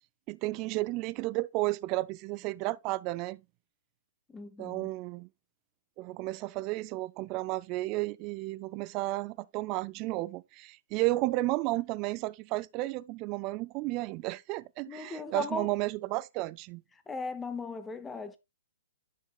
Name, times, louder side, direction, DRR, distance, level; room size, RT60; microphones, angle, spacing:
voice 1, 0.3-3.4 4.6-5.3 6.0-16.8, right 20 dB, 30° right, 0.3 m, -33 dB
voice 2, 4.3-4.9 14.9-15.7 17.1-18.4, left 4 dB, 10° left, 0.7 m, -38 dB
9.9 x 6.0 x 2.3 m
hypercardioid pair, 150°, 0 cm